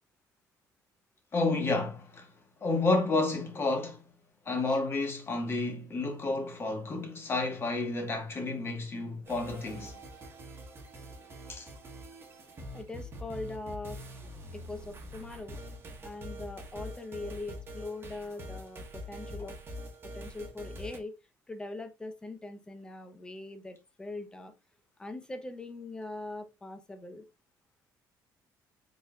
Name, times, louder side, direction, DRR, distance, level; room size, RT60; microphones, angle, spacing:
voice 1, 1.3-2.3 2.6-4.0 4.5-9.9 11.5-11.7, left 3 dB, 30° left, 1.1 m, -30 dB
sound 1, 9.2-21.0, equal, 30° right, 0.9 m, -44 dB
voice 2, 12.7-14.0 14.5-15.6 16.0-19.6 20.0-21.1 21.5-24.5 25.0-27.2, left 2 dB, 10° left, 0.6 m, -41 dB
4.0 x 3.6 x 2.2 m
cardioid pair, 130°, 8 cm